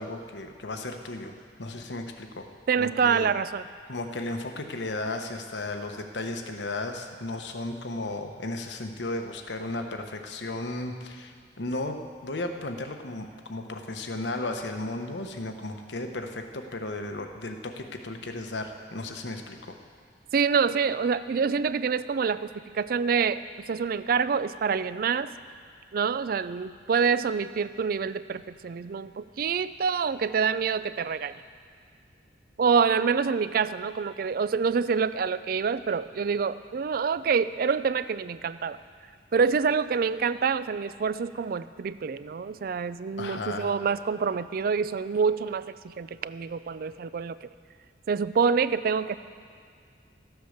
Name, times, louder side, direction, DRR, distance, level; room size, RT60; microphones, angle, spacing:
voice 1, 0.0-1.3 1.6-2.5 2.8-3.3 3.9-19.8 43.2-43.7, left 2 dB, 75° left, 5 dB, 1.0 m, -35 dB
voice 2, 2.7-3.6 20.3-23.4 23.7-25.3 25.9-31.3 32.6-38.8 39.3-47.4 48.1-49.2, right 6 dB, 55° right, 15 dB, 0.4 m, -26 dB
13.5 x 8.1 x 6.6 m, 2.1 s
head